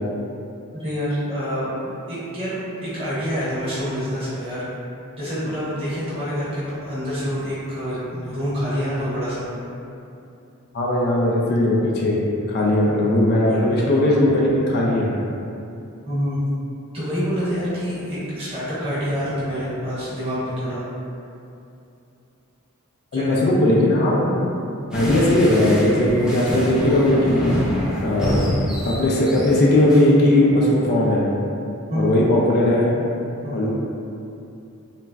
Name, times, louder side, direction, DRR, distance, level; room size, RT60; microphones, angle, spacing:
voice 1, 0.7-4.6 5.2-9.5 12.8-12.9 13.5-13.8 16.1-16.4 16.9-20.8 23.1-23.6 31.9-32.1 33.4-33.7, equal, 25° right, -12 dB, 0.9 m, -27 dB
voice 2, 10.7-12.2 12.5-15.1 23.1-24.4 24.9-27.5 28.0-28.4 28.9-31.3 31.9-32.9 33.5-33.7, left 1 dB, 50° left, -4 dB, 0.4 m, -18 dB
sound 1, 24.9-30.0, equal, 5° right, 0.6 m, -26 dB
3.1 x 2.4 x 2.2 m, 2.7 s
head